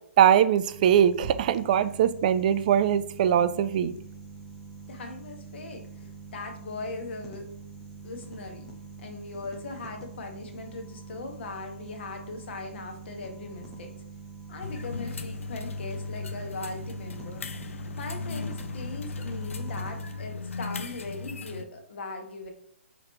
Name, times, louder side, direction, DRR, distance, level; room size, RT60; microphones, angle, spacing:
voice 1, 0.2-3.9, right 9 dB, 40° right, 0.3 m, -21 dB
sound 1, 0.7-20.2, right 4 dB, 5° left, 0.7 m, -45 dB
voice 2, 4.9-7.5 8.0-8.7 9.0-13.9 14.5-17.4 17.9-22.5, left 3 dB, 60° left, 1.2 m, -39 dB
sound 2, 14.6-21.6, left 4 dB, 90° left, 0.5 m, -36 dB
4.9 x 3.1 x 3.0 m
hypercardioid pair, 150°, 7 cm